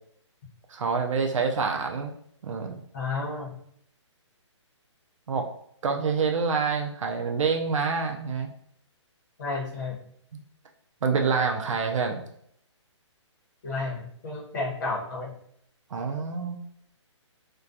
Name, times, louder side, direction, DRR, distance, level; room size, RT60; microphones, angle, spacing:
voice 1, 0.7-2.1 2.4-2.8 5.3-5.5 5.8-8.5 11.0-12.2 15.9-16.6, right 5 dB, 90° right, 3 dB, 0.4 m, -26 dB
voice 2, 2.9-3.5 9.4-10.0 13.6-15.3, left 3 dB, 35° left, -4 dB, 0.8 m, -31 dB
2.3 x 2.2 x 2.5 m, 0.68 s
hypercardioid pair, 165°, 16 cm